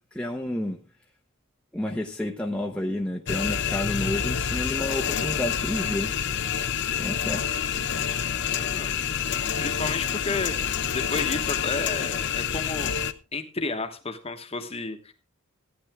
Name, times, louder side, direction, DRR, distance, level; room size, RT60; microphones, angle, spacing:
voice 1, 0.1-0.8 1.7-6.1 7.0-7.7, left 1 dB, 5° left, 0 dB, 0.8 m, -30 dB
sound 1, 3.3-13.1, left 8 dB, 50° left, 0.6 m, -28 dB
voice 2, 8.6-8.9 9.6-12.9 13.3-15.1, left 3 dB, 25° left, 8 dB, 1.2 m, -32 dB
15.0 x 10.0 x 3.5 m, 0.31 s
head